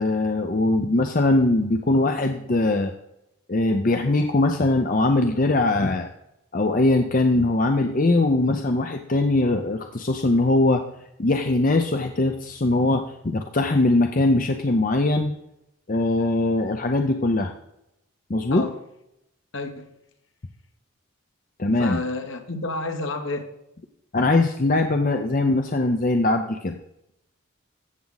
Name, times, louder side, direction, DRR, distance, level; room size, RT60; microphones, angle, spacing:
voice 1, 0.0-2.9 3.5-6.1 6.5-10.8 11.2-15.3 15.9-17.5 18.3-18.7 21.6-22.0 24.1-26.8, left 2 dB, 40° left, 0.6 m, -21 dB
voice 2, 19.5-19.9 21.8-23.5, left 2 dB, 65° left, 1.4 m, -30 dB
14.5 x 7.5 x 4.0 m
head